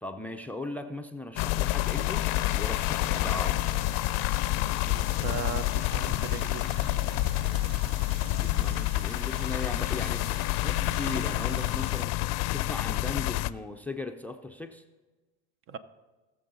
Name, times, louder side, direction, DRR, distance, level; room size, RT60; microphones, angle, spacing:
voice 1, 0.0-3.6 8.4-10.3 10.6-12.2 12.5-14.8, left 2 dB, 5° left, 9 dB, 0.4 m, -38 dB
sound 1, 1.4-13.5, left 18 dB, 65° left, 0.5 m, -28 dB
sound 2, 1.8-12.1, right 6 dB, 70° right, 1.0 m, -48 dB
sound 3, 2.9-4.4 6.7-7.8 8.1-8.8 10.6-11.8, right 11 dB, 85° right, 0.5 m, -46 dB
voice 2, 4.8-6.8 15.7-15.8, right 7 dB, 45° right, 14 dB, 0.7 m, -38 dB
18.5 x 6.9 x 4.0 m, 1.2 s
supercardioid pair, 125°, 29 cm